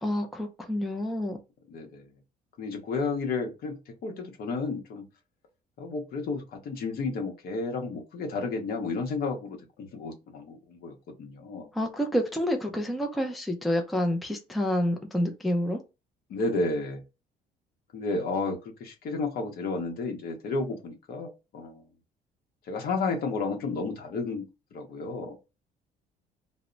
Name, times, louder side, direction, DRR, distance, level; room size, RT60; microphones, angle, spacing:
voice 1, 0.0-1.4 11.8-15.8, equal, ahead, 4 dB, 0.4 m, -28 dB
voice 2, 1.7-2.1 2.6-3.8 4.0-5.0 5.8-11.7 16.3-17.0 17.9-21.8 22.7-24.4 24.7-25.4, left 3 dB, 60° left, 4 dB, 0.8 m, -32 dB
2.0 x 2.0 x 3.7 m, 0.28 s
cardioid pair, 110°, 17 cm